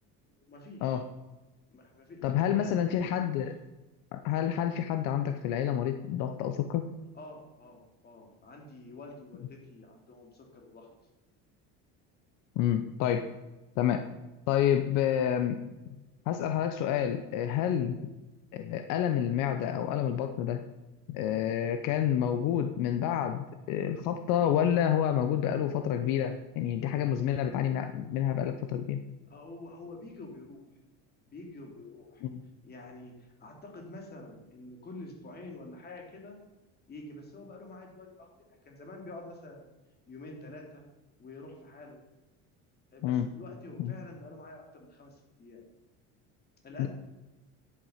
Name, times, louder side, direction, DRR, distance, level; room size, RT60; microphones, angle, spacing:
voice 1, 0.5-1.0 1.7-3.3 7.1-10.9 17.6-17.8 21.2-21.4 29.3-30.6 31.3-32.3 32.6-36.4 36.9-39.7 40.1-40.8 41.2-42.0 42.9-45.6 46.6-46.9, left 2 dB, 30° left, 1 dB, 3.0 m, -47 dB
voice 2, 2.2-3.6 4.1-6.9 12.6-13.3 13.8-14.1 14.5-15.6 16.3-18.1 18.5-20.6 21.1-29.0 32.2-32.4 43.0-43.3 43.8-43.9 46.8-46.9, left 10 dB, 70° left, 8 dB, 0.9 m, -29 dB
10.0 x 8.5 x 5.7 m, 1.1 s
cardioid pair, 140°, 34 cm